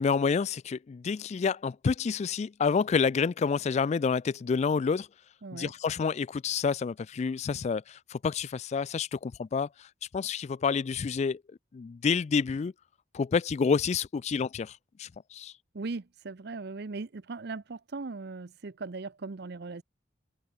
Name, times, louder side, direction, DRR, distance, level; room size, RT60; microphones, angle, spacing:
voice 1, 0.0-5.1 5.5-9.9 10.1-11.4 11.7-12.7 13.1-15.5, left 5 dB, 35° left, 0.3 m, -28 dB
voice 2, 5.4-5.7 15.7-19.8, right 3 dB, 60° right, 0.7 m, -38 dB
head